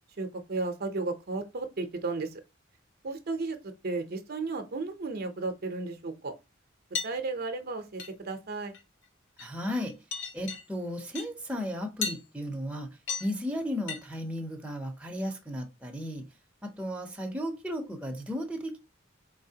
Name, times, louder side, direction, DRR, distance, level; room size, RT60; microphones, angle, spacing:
voice 1, 0.2-2.4 3.0-6.3 7.0-8.7, right 3 dB, 50° right, 0.6 m, -34 dB
sound 1, 6.9-7.1 8.0-8.3 8.7-9.0 9.4-9.8 10.1-10.6 11.2-11.3 12.0-12.2 13.1-13.3 13.9-14.0, left 5 dB, 65° left, 0.6 m, -34 dB
voice 2, 9.4-9.9 10.3-12.9 13.2-16.2 16.6-18.8, equal, 5° right, 0.7 m, -34 dB
4.2 x 3.3 x 2.8 m
head